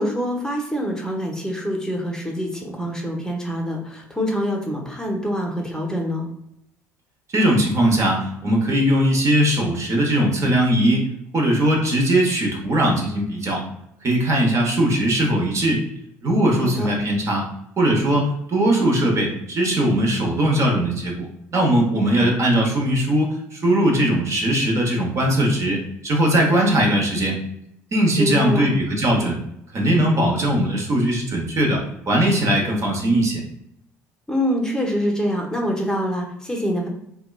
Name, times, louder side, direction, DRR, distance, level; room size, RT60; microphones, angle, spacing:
voice 1, 0.0-6.3 16.6-16.9 28.2-28.7 34.3-36.9, equal, 10° left, -1 dB, 0.7 m, -25 dB
voice 2, 7.3-11.1 11.3-13.6 14.0-15.8 16.2-17.5 17.8-27.4 27.9-29.4 29.7-33.4, right 1 dB, 40° right, 0 dB, 0.8 m, -20 dB
2.8 x 2.3 x 2.2 m, 0.76 s
hypercardioid pair, 65°, 8 cm